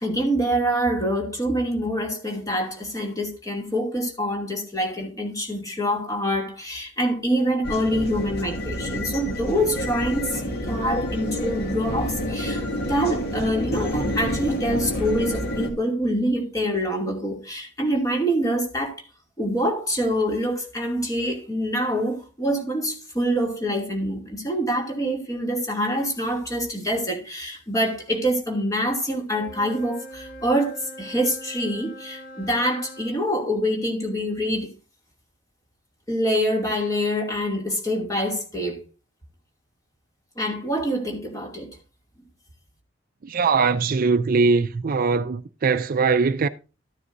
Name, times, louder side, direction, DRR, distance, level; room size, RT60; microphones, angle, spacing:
voice 1, 0.0-18.9 19.4-34.7 36.1-38.8 40.4-41.7, equal, 20° left, 2.6 m, -25 dB
sound 1, 7.6-15.7, equal, 55° left, 2.1 m, -28 dB
Wind instrument woodwind instrument, 29.2-33.2, equal, 80° left, 3.1 m, -42 dB
voice 2, 43.2-46.5, right 4 dB, 45° right, 0.4 m, -21 dB
13.0 x 9.7 x 2.6 m
head